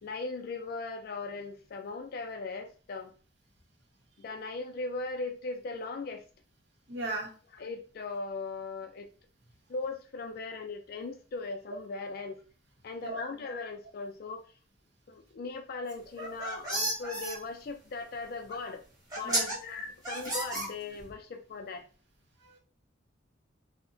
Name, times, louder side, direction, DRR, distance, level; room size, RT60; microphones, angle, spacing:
voice 1, 0.0-3.1 4.2-6.3 7.5-9.1 9.7-12.4 12.8-14.4 15.1-18.8 19.1-21.9, left 3 dB, 50° left, 6 dB, 0.4 m, -38 dB
voice 2, 6.9-7.3 13.0-13.3 19.2-19.5 22.4-22.6, right 1 dB, 65° right, 1 dB, 0.7 m, -36 dB
sound 1, 16.1-17.4 18.5-18.6 19.1-19.6 20.0-21.1, right 1 dB, 20° right, 0.8 m, -32 dB
2.7 x 2.1 x 2.6 m, 0.38 s
head